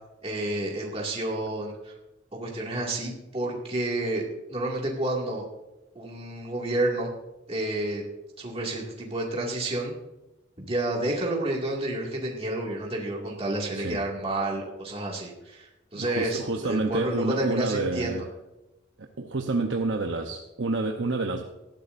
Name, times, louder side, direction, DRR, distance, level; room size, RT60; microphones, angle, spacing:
voice 1, 0.2-2.0 2.3-4.2 4.5-5.4 5.9-7.1 7.5-8.0 8.4-9.9 10.6-18.3, right 1 dB, 30° right, -2 dB, 2.3 m, -30 dB
voice 2, 15.9-18.2 19.0-21.4, right 3 dB, 70° right, 3 dB, 0.9 m, -28 dB
18.0 x 13.0 x 2.6 m, 0.98 s
head